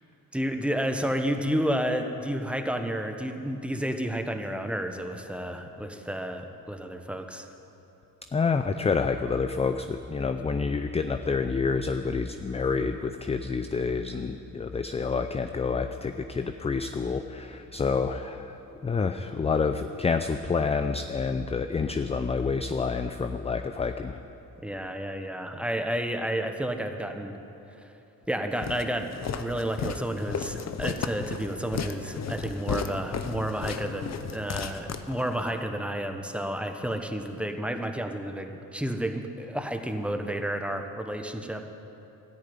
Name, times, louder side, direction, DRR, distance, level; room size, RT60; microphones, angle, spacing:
voice 1, 0.3-7.5 24.6-27.4 28.3-41.6, right 1 dB, 5° right, 5 dB, 1.1 m, -31 dB
voice 2, 8.3-18.6 18.8-24.2, left 5 dB, 20° left, 8 dB, 0.4 m, -28 dB
Walk footsteps, 28.6-35.5, left 6 dB, 45° left, 0.9 m, -34 dB
13.5 x 10.5 x 9.5 m, 3.0 s
cardioid pair, 125°, 35 cm